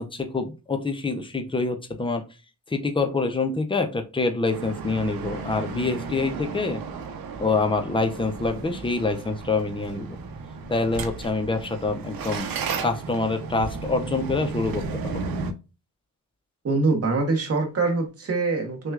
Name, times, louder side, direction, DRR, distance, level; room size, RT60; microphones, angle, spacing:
voice 1, 0.0-2.2 2.7-6.8 7.4-10.2 10.7-12.5 12.8-15.3, left 3 dB, 15° left, 0.6 m, -26 dB
sound 1, 4.5-15.5, right 4 dB, 80° right, 0.7 m, -34 dB
voice 2, 16.6-18.9, right 3 dB, 45° right, 1.2 m, -24 dB
6.0 x 2.4 x 2.3 m
wide cardioid pair, 160°, 35 cm